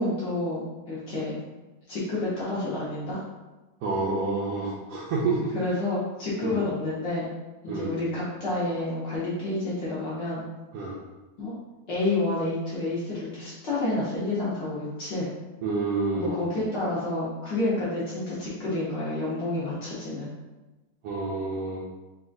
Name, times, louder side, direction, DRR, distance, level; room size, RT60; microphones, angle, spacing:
voice 1, 0.0-1.4 1.9-3.2 5.5-7.3 7.6-10.4 11.4-11.6 11.9-15.3 16.1-20.3, left 2 dB, 70° left, -8 dB, 1.0 m, -29 dB
voice 2, 3.8-5.5 6.4-6.6 7.7-7.9 10.7-11.0 15.6-16.3 21.0-21.8, right 3 dB, 80° right, -6 dB, 1.4 m, -28 dB
4.8 x 2.4 x 3.8 m, 1.1 s
omnidirectional pair, 3.5 m